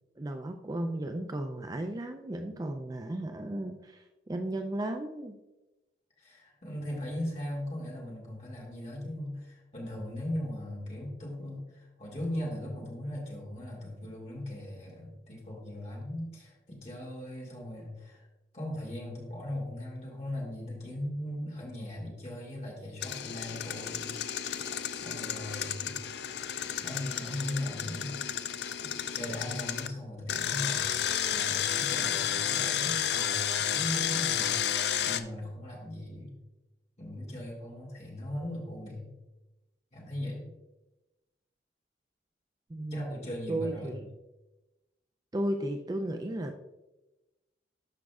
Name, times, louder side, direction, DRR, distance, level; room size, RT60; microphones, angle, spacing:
voice 1, 0.2-5.3 42.7-43.2 43.5-44.1 45.3-46.6, right 1 dB, 20° right, 6 dB, 0.3 m, -34 dB
voice 2, 6.2-18.3 18.5-25.9 26.8-28.4 28.8-31.0 31.3-36.3 37.0-39.1 39.9-40.5 42.9-43.9, left 1 dB, 40° left, -2 dB, 2.0 m, -39 dB
Engine, 23.0-29.9 30.3-35.2, left 9 dB, 70° left, 0.4 m, -32 dB
12.5 x 5.1 x 2.4 m, 1.0 s
head